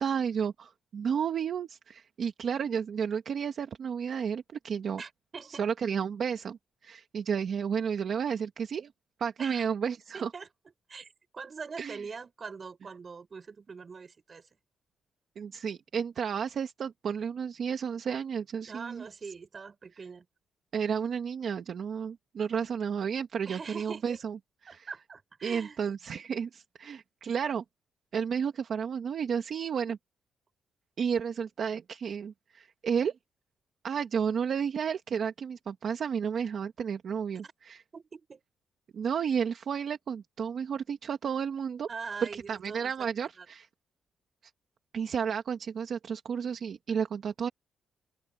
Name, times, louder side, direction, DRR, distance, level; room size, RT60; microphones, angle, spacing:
voice 1, 0.0-5.0 5.6-8.9 9.2-10.3 11.8-12.0 15.3-19.0 20.7-24.4 24.6-24.8 25.4-27.6 28.1-30.0 31.0-33.1 33.8-37.8 38.9-41.9 42.3-43.7 44.9-47.5, right 7 dB, 45° right, 1.6 m, -32 dB
voice 2, 5.0-5.7 9.4-9.7 10.1-10.5 10.9-14.6 18.7-20.3 23.4-24.2 24.7-25.8 37.4-37.5 37.9-38.4 41.9-43.1 43.4-43.5, right 5 dB, 30° right, 6.4 m, -43 dB
open air
wide cardioid pair, 180°, 0 cm